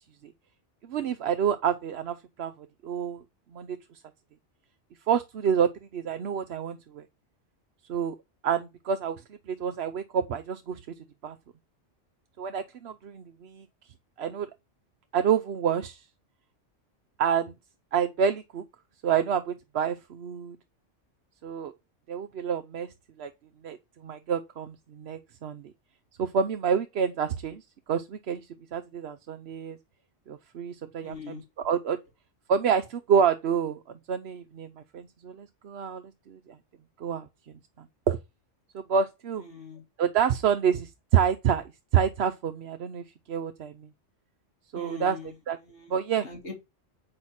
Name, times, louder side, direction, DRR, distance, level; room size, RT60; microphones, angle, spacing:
voice 1, 0.9-2.5 2.8-3.2 3.5-3.8 5.1-7.0 7.9-8.1 8.4-9.2 9.5-10.8 11.2-11.4 12.4-13.6 14.2-14.5 15.1-16.0 17.2-17.5 17.9-18.6 19.0-20.6 21.4-21.7 22.1-22.9 23.2-23.3 23.6-23.8 24.0-25.6 26.2-27.6 27.9-28.5 28.7-29.8 30.3-31.4 31.6-32.0 32.5-33.8 34.1-36.4 37.0-37.3 38.1-38.2 38.9-39.4 40.0-41.6 41.9-43.9 44.7-45.2 45.5-45.6 45.9-46.2, right 7 dB, 60° right, 0.9 m, -28 dB
voice 2, 31.0-31.5 39.4-39.8 44.7-45.3 45.6-46.0 46.2-46.5, left 3 dB, 65° left, 3.1 m, -41 dB
8.7 x 6.1 x 4.2 m
omnidirectional pair, 1.3 m